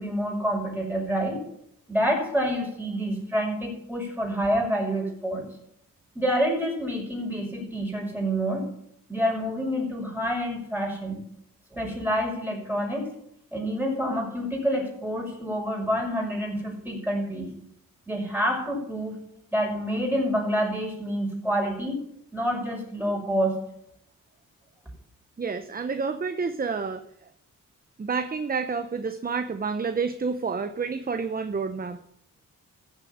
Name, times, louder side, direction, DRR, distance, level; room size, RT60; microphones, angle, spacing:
voice 1, 0.0-1.4 1.9-5.4 6.1-8.6 9.1-11.2 11.7-13.0 13.5-17.5 18.1-19.1 19.5-22.0 22.3-23.6, equal, 5° right, -1 dB, 6.0 m, -27 dB
voice 2, 25.4-27.0 28.0-32.0, right 5 dB, 25° right, 10 dB, 0.8 m, -29 dB
14.5 x 7.2 x 7.3 m, 0.73 s
cardioid pair, 90°, 33 cm